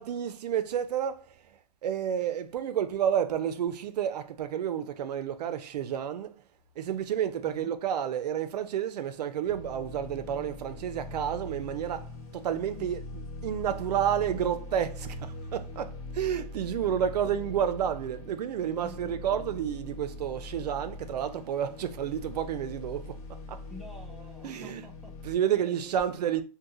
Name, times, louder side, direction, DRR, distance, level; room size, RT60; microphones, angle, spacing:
voice 1, 0.0-6.4 6.8-23.2 23.5-23.6 24.4-24.9 25.2-26.4, right 9 dB, 90° right, 0.5 m, -30 dB
sound 1, 9.5-25.3, left 2 dB, 70° left, 1.3 m, -42 dB
voice 2, 17.2-17.6 18.8-19.6 23.7-26.4, left 2 dB, ahead, 0.4 m, -49 dB
2.8 x 2.2 x 3.6 m
supercardioid pair, 155°, 20 cm